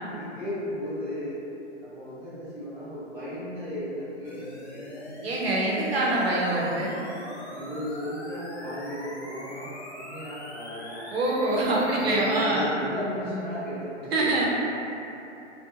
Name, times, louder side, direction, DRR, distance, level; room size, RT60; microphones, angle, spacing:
voice 1, 0.1-1.4 1.8-5.0 7.4-11.0 12.0-14.4, equal, 10° right, -19 dB, 0.3 m, -35 dB
sound 1, 4.2-12.6, left 1 dB, 60° left, 0.7 m, -42 dB
voice 2, 5.2-7.0 11.1-12.8 14.1-14.5, right 2 dB, 55° right, -4 dB, 0.7 m, -25 dB
2.8 x 2.2 x 2.4 m, 2.9 s
hypercardioid pair, 140°, 37 cm